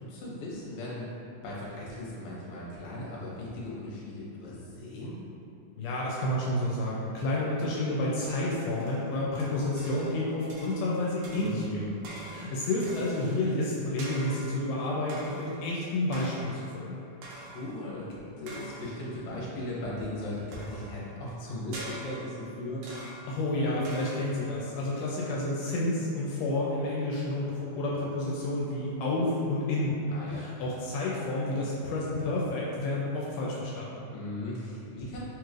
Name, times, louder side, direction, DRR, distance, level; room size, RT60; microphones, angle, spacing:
voice 1, 0.1-1.1 1.4-5.1 11.4-11.8 17.4-18.1 18.4-22.8 30.1-30.5 34.1-35.2, left 1 dB, 70° left, -7 dB, 2.0 m, -38 dB
voice 2, 5.8-12.0 12.3-17.0 23.3-30.0 30.3-34.1, left 1 dB, 85° left, -5 dB, 2.1 m, -30 dB
sound 1, 8.7-10.2 10.5-11.0 11.2-13.5 14.0-14.6 15.1-15.7 16.1-16.7 17.2-17.8 18.5-19.1 20.5-21.0 21.7-22.4 22.8-23.4 23.8-24.5, right 1 dB, 80° right, 1.4 m, -44 dB
4.7 x 3.1 x 2.4 m, 2.8 s
omnidirectional pair, 3.6 m